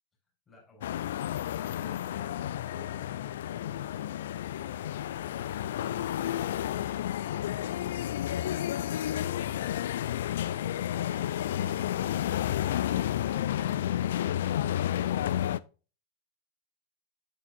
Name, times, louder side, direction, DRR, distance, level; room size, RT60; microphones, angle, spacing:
voice 1, 0.5-1.0, left 3 dB, 20° left, -4 dB, 4.7 m, -57 dB
sound 1, 0.8-15.6, left 11 dB, 60° left, 0.4 m, -31 dB
sound 2, 10.4-10.6 11.0-11.2 11.6-11.8 12.2-12.4 12.8-13.0, right 1 dB, 90° right, 0.5 m, -51 dB
8.9 x 8.6 x 2.6 m, 0.35 s
figure-of-eight pair, 90°, 0 cm